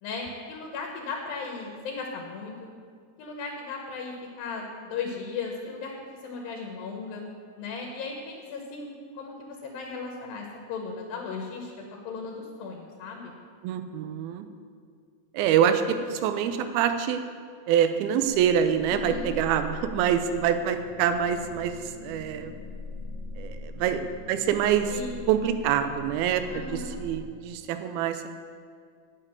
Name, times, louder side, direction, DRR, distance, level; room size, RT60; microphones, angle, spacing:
voice 1, 0.0-2.7 3.2-5.9 6.2-7.3 7.6-11.7 12.0-13.4 18.8-19.3 24.9-25.3 26.5-27.0, left 4 dB, 75° left, 1 dB, 2.9 m, -36 dB
voice 2, 13.6-14.5 15.3-17.2 17.7-21.8 22.0-22.5 23.4-24.9 25.3-28.3, right 9 dB, 90° right, 8 dB, 2.5 m, -25 dB
sound 1, 18.3-27.2, left 2 dB, 45° left, 1.8 m, -41 dB
9.8 x 6.7 x 8.6 m, 2.1 s
omnidirectional pair, 4.3 m